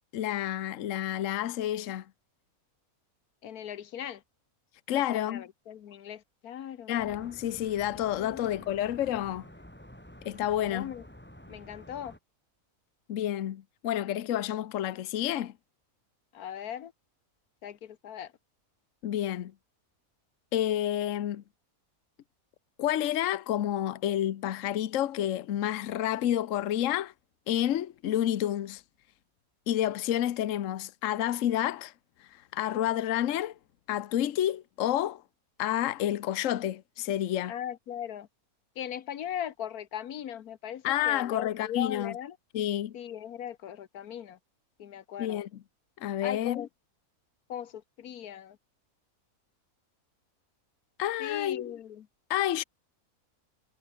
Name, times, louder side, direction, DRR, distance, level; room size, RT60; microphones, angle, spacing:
voice 1, 0.1-2.0 4.9-5.4 6.9-9.5 10.2-10.9 13.1-15.5 19.0-19.5 20.5-21.4 22.8-27.1 27.5-28.8 29.7-31.9 32.3-33.6 33.9-35.2 35.6-37.5 40.8-42.1 42.5-43.0 45.2-45.5 46.0-46.6 51.0-51.7 52.3-52.6, left 12 dB, 65° left, 1.1 m, -29 dB
voice 2, 3.4-4.2 4.9-7.1 8.2-8.5 10.7-11.1 11.5-12.1 16.3-16.9 17.6-18.3 37.5-38.3 38.7-42.4 42.9-44.4 44.8-45.4 46.2-46.7 47.5-48.6 51.2-52.1, left 10 dB, 90° left, 1.5 m, -39 dB
sound 1, 7.0-12.2, equal, 5° left, 3.3 m, -50 dB
omnidirectional pair, 1.5 m